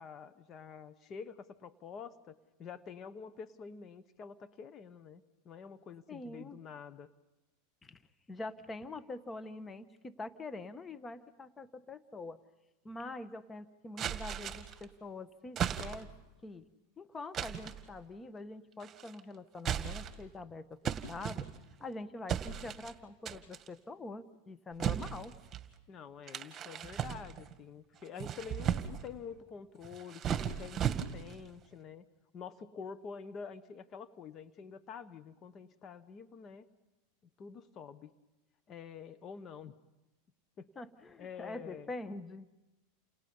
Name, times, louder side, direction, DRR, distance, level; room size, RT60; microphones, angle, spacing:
voice 1, 0.0-7.1 25.9-32.1 32.3-36.7 37.4-38.1 38.7-39.7 40.6-40.7 41.2-41.9, left 6 dB, 35° left, 12 dB, 1.2 m, -47 dB
voice 2, 6.1-6.6 7.8-8.0 8.3-12.4 12.8-16.1 16.4-16.7 17.0-21.5 21.8-25.3 40.7-42.5, left 2 dB, 20° left, 12 dB, 1.3 m, -45 dB
sound 1, 14.0-14.8 15.6-16.2 17.3-17.8 18.8-19.2 19.6-20.3 20.8-21.8 22.3-22.9 23.3-23.7 24.8-25.7 26.3-27.5 28.0-29.1 29.8-31.4, right 9 dB, 30° right, 2.0 m, -36 dB
30.0 x 27.5 x 5.6 m, 1.0 s
hypercardioid pair, 115°, 0 cm